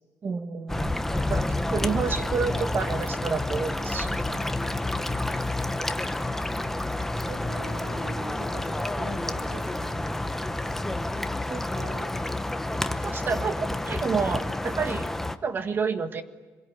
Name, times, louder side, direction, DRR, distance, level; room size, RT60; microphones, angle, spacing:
voice 1, 0.2-4.4 11.5-12.1 13.0-15.1 15.4-16.2, right 5 dB, 35° right, 8 dB, 1.7 m, -30 dB
sound 1, 0.7-15.4, left 2 dB, 5° left, 0.9 m, -29 dB
voice 2, 1.7-2.0 4.9-5.2 7.2-10.0, right 4 dB, 85° right, 7 dB, 4.6 m, -43 dB
26.5 x 23.0 x 9.5 m, 1.3 s
cardioid pair, 160°, 7 cm